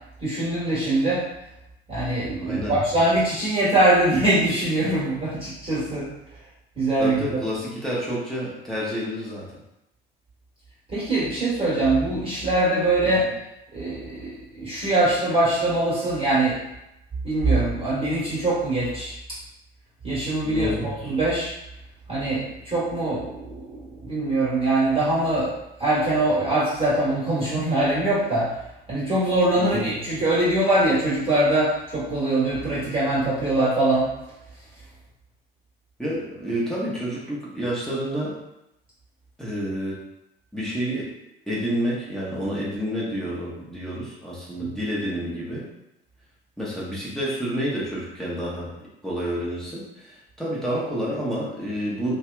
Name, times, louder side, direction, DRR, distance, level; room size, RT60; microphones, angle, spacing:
voice 1, 0.2-1.2 1.9-6.1 6.8-7.4 10.9-13.3 13.7-16.6 17.2-19.1 20.0-21.5 22.1-28.5 28.9-34.1 44.6-44.7, right 2 dB, 20° right, -10 dB, 1.3 m, -23 dB
voice 2, 2.4-2.8 7.0-9.5 13.2-13.3 20.4-20.9 29.5-29.8 36.0-38.3 39.4-40.0 40.5-41.1 41.5-45.6 46.6-48.7 49.0-52.2, equal, ahead, -8 dB, 1.0 m, -29 dB
2.6 x 2.3 x 2.2 m, 0.86 s
figure-of-eight pair, 55°, 30 cm